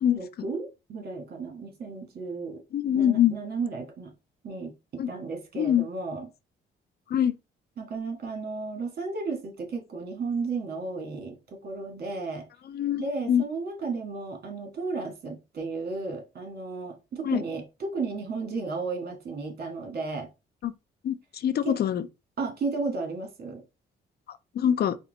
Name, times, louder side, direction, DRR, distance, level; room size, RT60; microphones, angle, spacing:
voice 1, 0.1-2.6 2.9-4.1 4.4-6.3 7.8-12.5 13.0-20.3 21.6-21.8 22.4-23.6, right 4 dB, 50° right, 1.5 m, -34 dB
voice 2, 2.7-3.3 5.0-5.1 5.6-5.8 7.1-7.3 12.7-13.4 17.2-17.4 20.6-20.7 21.0-22.1 24.6-25.0, left 10 dB, 55° left, 0.4 m, -24 dB
4.3 x 2.1 x 3.9 m
cardioid pair, 90°, 20 cm